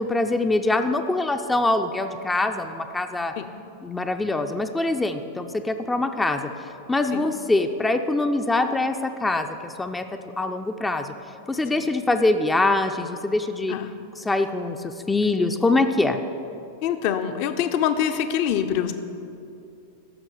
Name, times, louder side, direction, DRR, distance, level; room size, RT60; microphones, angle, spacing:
voice 1, 0.0-3.3 3.8-6.5 6.9-11.1 11.5-13.7 14.2-16.2, left 2 dB, 10° left, 6 dB, 0.5 m, -24 dB
voice 2, 16.8-18.9, left 9 dB, 45° left, 9 dB, 0.8 m, -25 dB
15.0 x 6.1 x 6.6 m, 2.6 s
figure-of-eight pair, 90°, 0 cm